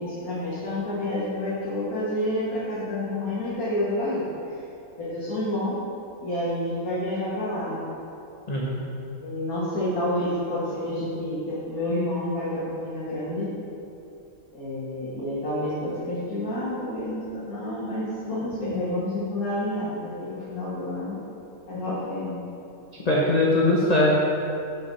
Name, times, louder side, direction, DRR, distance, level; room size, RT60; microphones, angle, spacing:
voice 1, 0.0-4.3 4.5-4.6 5.0-5.8 6.2-7.9 9.2-13.5 14.5-21.2 21.7-22.4, left 1 dB, 75° left, -10 dB, 2.3 m, -29 dB
voice 2, 8.5-8.8 23.0-24.1, left 1 dB, 35° left, -4 dB, 0.9 m, -21 dB
13.0 x 5.6 x 4.2 m, 2.7 s
omnidirectional pair, 1.6 m